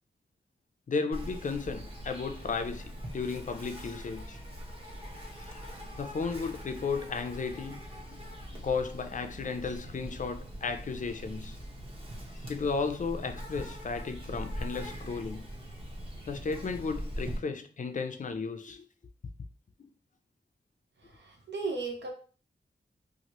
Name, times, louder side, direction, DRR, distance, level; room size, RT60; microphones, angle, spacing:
voice 1, 0.9-4.4 5.4-5.6 6.0-8.2 8.5-11.6 12.3-15.5 16.3-18.8 19.8-19.9, left 4 dB, 45° left, 0.4 m, -34 dB
Insect, 1.1-17.4, equal, 30° right, 1.0 m, -42 dB
voice 2, 21.1-22.1, right 4 dB, 75° right, 0.8 m, -35 dB
2.9 x 2.4 x 2.9 m
wide cardioid pair, 80°, 18 cm